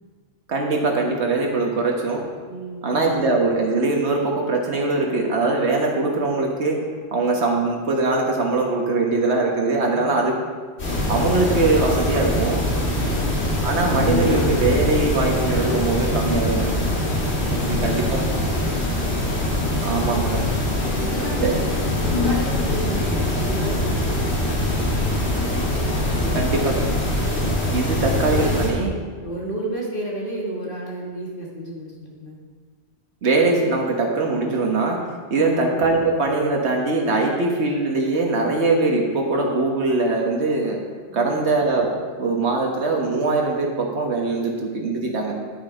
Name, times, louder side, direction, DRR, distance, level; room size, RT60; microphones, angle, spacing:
voice 1, 0.5-2.2 2.8-6.8 7.1-10.4 11.1-12.6 13.6-16.7 17.6-18.2 19.8-20.4 21.4-21.5 26.3-26.8 27.7-28.9 33.2-35.0 35.3-40.8 41.1-41.9 42.2-45.3, right 3 dB, 85° right, 0 dB, 1.5 m, -22 dB
voice 2, 2.5-2.9 9.9-10.4 13.0-13.4 16.8-18.8 20.8-25.3 26.0-26.9 27.8-28.0 28.3-28.6 29.2-32.4 41.1-41.4, right 1 dB, 55° left, -3 dB, 1.7 m, -33 dB
sound 1, 10.8-28.7, left 1 dB, 75° left, 2.5 m, -23 dB
10.5 x 7.8 x 5.0 m, 1.5 s
omnidirectional pair, 1.1 m